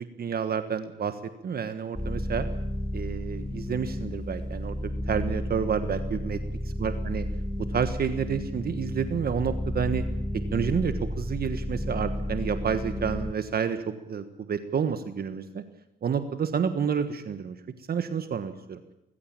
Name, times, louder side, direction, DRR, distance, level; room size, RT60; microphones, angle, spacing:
voice 1, 0.2-2.5 2.9-6.4 6.8-7.2 7.7-10.0 10.5-15.6 16.0-17.6 17.9-18.8, right 7 dB, 50° right, 9 dB, 1.5 m, -29 dB
sound 1, 1.9-13.3, left 1 dB, 5° left, 1.0 m, -32 dB
19.5 x 15.5 x 8.9 m, 0.90 s
cardioid pair, 90°, 20 cm